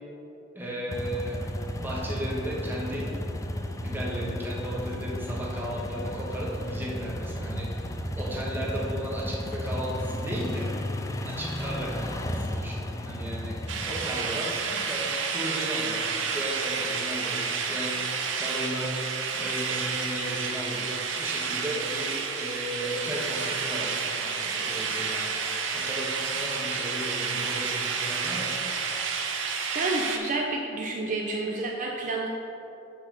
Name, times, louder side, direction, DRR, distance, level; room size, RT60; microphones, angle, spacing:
voice 1, 0.5-1.4 1.7-3.2 3.8-10.7 11.2-19.1 19.4-25.5 25.7-28.6, equal, 10° right, -4 dB, 1.2 m, -35 dB
sound 1, 0.9-14.0, left 1 dB, 15° left, 0.4 m, -33 dB
sound 2, 13.7-30.2, right 5 dB, 80° right, 0.7 m, -30 dB
voice 2, 29.7-32.3, right 2 dB, 45° right, 0 dB, 0.5 m, -29 dB
6.1 x 4.2 x 6.0 m, 3.0 s
head